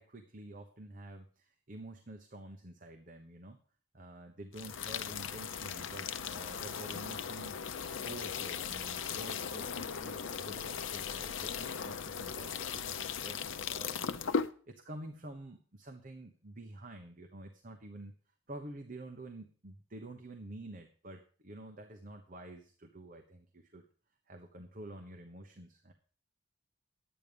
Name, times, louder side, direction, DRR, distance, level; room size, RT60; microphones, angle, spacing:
voice 1, 0.0-3.6 3.9-7.6 8.0-14.1 14.7-18.1 18.5-23.8 24.3-25.9, right 1 dB, 45° right, 4 dB, 1.1 m, -49 dB
sound 1, 4.5-14.5, left 6 dB, 75° left, 0.6 m, -38 dB
11.0 x 9.2 x 5.2 m, 0.42 s
head